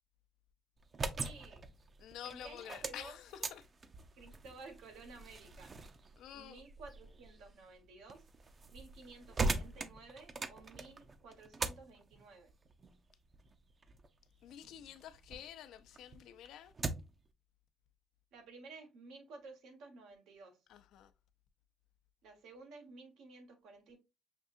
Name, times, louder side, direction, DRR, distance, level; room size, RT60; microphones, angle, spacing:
sound 1, 0.8-15.5 15.9-17.3, right 3 dB, 40° right, 0.5 m, -43 dB
voice 1, 1.2-1.6 2.2-3.2 4.2-5.7 6.3-8.2 8.7-12.5 18.3-20.6 22.2-24.0, right 3 dB, 90° right, 1.2 m, -54 dB
voice 2, 2.0-3.7 6.2-6.6 14.4-16.7 20.7-21.1, left 10 dB, 85° left, 0.5 m, -49 dB
5.9 x 2.7 x 2.5 m
cardioid pair, 90°, 0 cm